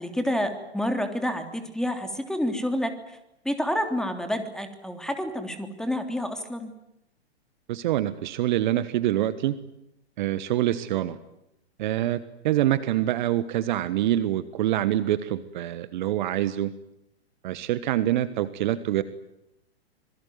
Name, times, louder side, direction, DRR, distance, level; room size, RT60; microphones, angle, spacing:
voice 1, 0.0-3.2 3.4-6.7, equal, ahead, 6 dB, 3.2 m, -29 dB
voice 2, 7.7-9.5 10.2-11.2 11.8-16.7 17.4-19.0, right 13 dB, 45° right, 15 dB, 1.4 m, -25 dB
26.5 x 22.0 x 9.4 m, 0.83 s
figure-of-eight pair, 105°, 32 cm